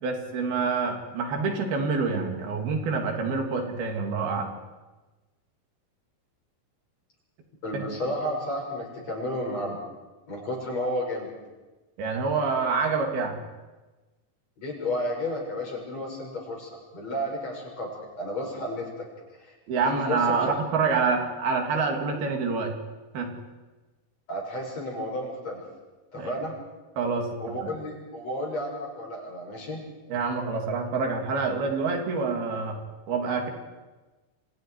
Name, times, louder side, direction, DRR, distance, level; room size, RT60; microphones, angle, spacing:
voice 1, 0.0-4.5 7.7-7.8 12.0-13.4 19.7-22.7 23.1-23.4 26.1-26.3 27.0-27.7 30.1-32.8 33.1-33.5, right 4 dB, 90° right, 2 dB, 4.7 m, -27 dB
voice 2, 7.6-9.8 10.3-11.3 14.6-17.9 18.2-19.1 19.4-19.5 19.8-20.5 24.3-25.6 26.1-26.6 27.4-29.8, left 1 dB, 45° left, -1 dB, 7.3 m, -32 dB
29.5 x 26.0 x 4.8 m, 1.2 s
omnidirectional pair, 4.2 m